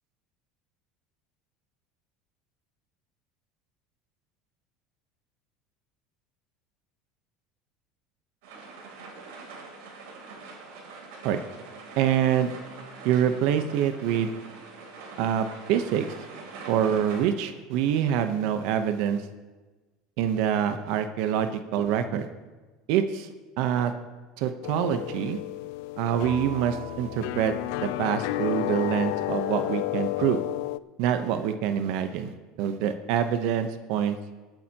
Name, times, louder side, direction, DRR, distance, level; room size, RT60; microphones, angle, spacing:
sound 1, 8.4-17.3, right 4 dB, 90° right, 3.2 m, -44 dB
voice 1, 12.0-12.5 13.0-14.3 15.2-16.1 16.7-19.2 20.2-22.3 22.9-23.3 23.6-23.9 24.4-25.4 26.0-30.4 31.0-34.2, right 9 dB, 65° right, 9 dB, 0.8 m, -26 dB
sound 2, 24.6-30.8, left 18 dB, 75° left, 0.3 m, -31 dB
Mallet percussion, 26.3-28.3, right 8 dB, 35° right, 0.7 m, -45 dB
22.0 x 8.9 x 2.9 m, 1.2 s
cardioid pair, 140°, 0 cm